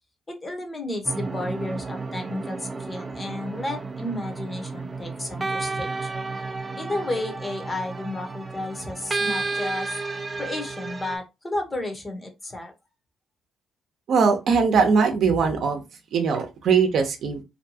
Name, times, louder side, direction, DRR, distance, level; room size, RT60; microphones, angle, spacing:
voice 1, 0.3-6.1 6.8-10.0 10.4-12.7, left 2 dB, 25° left, 4 dB, 0.8 m, -32 dB
sound 1, 1.0-11.2, right 3 dB, 25° right, 0.4 m, -32 dB
voice 2, 14.1-15.8 16.1-17.4, right 5 dB, 65° right, 5 dB, 0.7 m, -21 dB
2.7 x 2.2 x 2.7 m, 0.24 s
cardioid pair, 90°, 0 cm